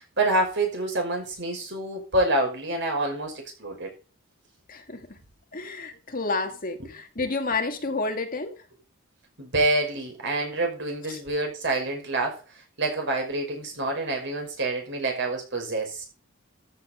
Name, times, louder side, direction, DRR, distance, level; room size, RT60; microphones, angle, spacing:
voice 1, 0.0-3.9 9.4-12.4 12.8-16.0, right 2 dB, 60° right, 5.5 m, -27 dB
voice 2, 4.7-5.2 5.5-8.6 11.1-11.2, left 3 dB, 45° left, 2.1 m, -30 dB
14.5 x 6.9 x 5.2 m
head